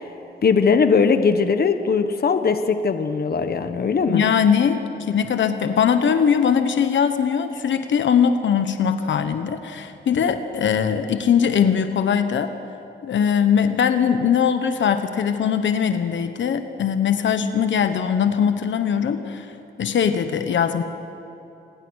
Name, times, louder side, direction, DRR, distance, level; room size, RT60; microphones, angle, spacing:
voice 1, 0.4-4.2, left 5 dB, 55° left, 8 dB, 1.2 m, -19 dB
voice 2, 4.1-12.5 13.0-19.5 19.8-20.8, left 7 dB, 80° left, 9 dB, 1.2 m, -21 dB
28.5 x 21.0 x 6.4 m, 2.8 s
wide cardioid pair, 110°, 19 cm